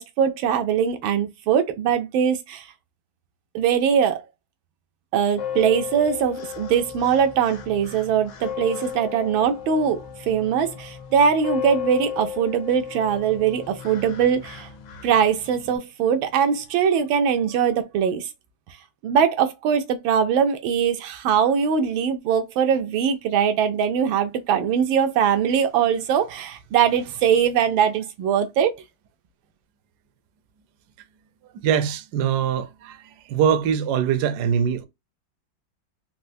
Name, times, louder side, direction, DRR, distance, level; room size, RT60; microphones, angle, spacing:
voice 1, 0.0-2.6 3.5-4.2 5.1-14.7 15.0-18.3 19.0-28.8, right 7 dB, 85° right, 1.4 m, -21 dB
sound 1, 5.3-15.8, left 8 dB, 70° left, 1.5 m, -35 dB
voice 2, 31.6-33.0 33.3-34.8, right 8 dB, 70° right, 1.0 m, -22 dB
4.3 x 2.0 x 2.5 m
omnidirectional pair, 2.1 m